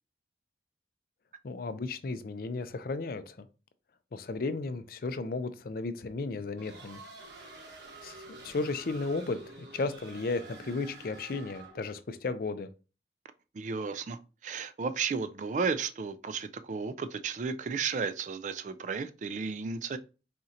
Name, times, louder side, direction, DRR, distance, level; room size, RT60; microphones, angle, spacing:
voice 1, 1.4-3.5 4.1-7.0 8.0-12.7, left 3 dB, 55° left, 0.4 m, -34 dB
sound 1, 6.6-11.9, right 3 dB, 80° right, 1.3 m, -49 dB
voice 2, 13.5-20.0, right 5 dB, 45° right, 0.3 m, -33 dB
4.2 x 3.7 x 2.7 m
head